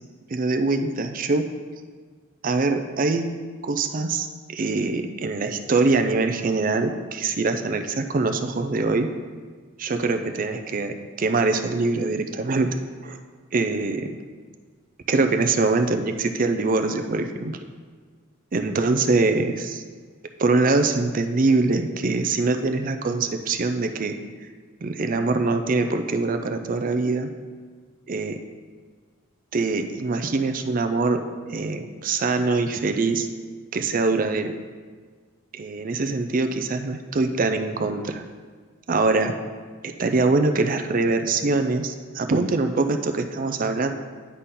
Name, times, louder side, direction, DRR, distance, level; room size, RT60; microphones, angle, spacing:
voice 1, 0.3-1.5 2.4-3.3 3.6-4.3 4.5-9.1 9.8-12.7 13.0-13.2 13.5-14.1 15.1-17.6 18.5-19.8 20.4-24.2 24.8-27.3 28.1-28.4 29.5-31.2 31.5-33.3 33.7-34.5 35.5-38.2 38.9-39.3 39.8-43.9, right 3 dB, 40° right, 7 dB, 0.4 m, -23 dB
9.6 x 4.1 x 3.8 m, 1.5 s
head